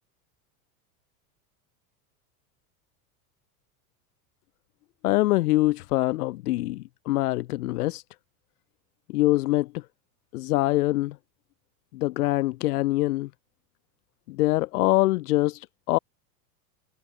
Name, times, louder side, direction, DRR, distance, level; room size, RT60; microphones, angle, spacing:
voice 1, 5.0-8.0 9.1-9.8 10.3-11.2 11.9-13.3 14.3-16.0, left 18 dB, 80° left, 1.7 m, -24 dB
supercardioid pair, 115°, 45 cm